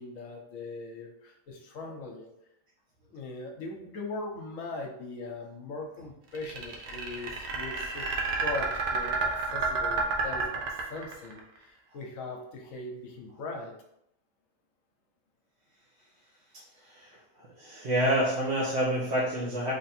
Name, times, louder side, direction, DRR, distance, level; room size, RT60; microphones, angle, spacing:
voice 1, 0.0-2.3 3.1-8.1 8.4-13.7, left 3 dB, 65° left, 1 dB, 1.0 m, -40 dB
sound 1, 6.3-11.4, right 4 dB, 80° right, 1.2 m, -30 dB
voice 2, 17.6-19.7, right 1 dB, 55° right, -6 dB, 0.9 m, -27 dB
3.3 x 2.5 x 4.1 m, 0.78 s
omnidirectional pair, 1.6 m